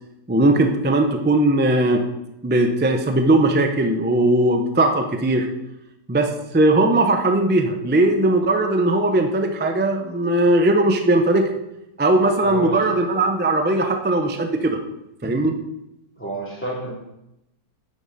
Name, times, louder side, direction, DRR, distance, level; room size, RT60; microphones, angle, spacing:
voice 1, 0.3-2.0 2.4-5.5 6.1-11.5 12.0-14.8 15.2-15.5, right 2 dB, 15° right, 5 dB, 0.3 m, -19 dB
voice 2, 12.4-12.9 16.2-16.9, right 1 dB, 5° left, -5 dB, 3.0 m, -29 dB
10.0 x 9.1 x 4.2 m, 0.88 s
omnidirectional pair, 1.9 m